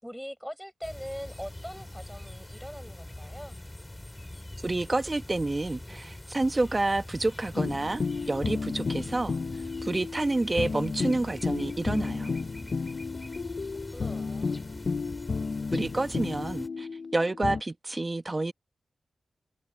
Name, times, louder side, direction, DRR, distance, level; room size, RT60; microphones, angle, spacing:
voice 1, 0.0-3.6 13.9-14.6, equal, ahead, 6.3 m, -41 dB
sound 1, 0.8-16.7, left 1 dB, 15° left, 6.0 m, -44 dB
voice 2, 4.6-9.4 9.8-12.4 15.7-18.5, right 2 dB, 30° right, 1.2 m, -29 dB
sound 2, 7.5-17.6, left 4 dB, 60° left, 0.4 m, -32 dB
cardioid pair, 60°, 0 cm